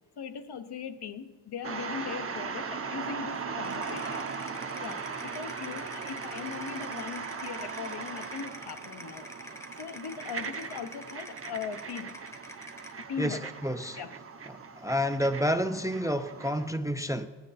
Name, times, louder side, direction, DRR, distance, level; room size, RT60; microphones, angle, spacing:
voice 1, 0.2-4.2 4.8-9.3 9.8-12.2 13.1-13.5 14.0-14.2, left 7 dB, 70° left, 9 dB, 0.9 m, -39 dB
sound 1, 1.6-16.7, right 5 dB, 35° right, 0.8 m, -39 dB
sound 2, 3.6-13.0, left 1 dB, 5° left, 0.9 m, -47 dB
voice 2, 13.6-14.0 14.8-17.3, equal, 10° right, 9 dB, 0.5 m, -29 dB
19.0 x 9.8 x 4.2 m, 1.3 s
cardioid pair, 95°, 41 cm